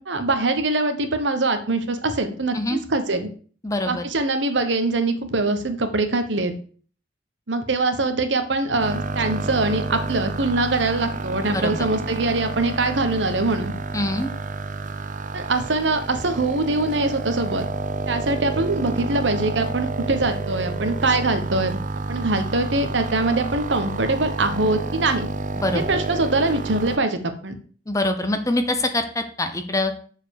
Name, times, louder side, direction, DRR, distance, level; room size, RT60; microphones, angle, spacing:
voice 1, 0.0-3.3 3.9-6.5 7.5-13.7 15.3-17.6 18.1-21.8 22.1-25.3 25.7-27.6, right 2 dB, 90° right, 8 dB, 1.3 m, -23 dB
voice 2, 3.6-4.0 11.5-11.9 13.9-14.3 25.6-25.8 27.9-29.9, left 1 dB, 20° left, 7 dB, 0.9 m, -24 dB
sound 1, 8.8-27.0, right 3 dB, 45° right, 0.6 m, -29 dB
7.1 x 4.8 x 6.6 m, 0.43 s
head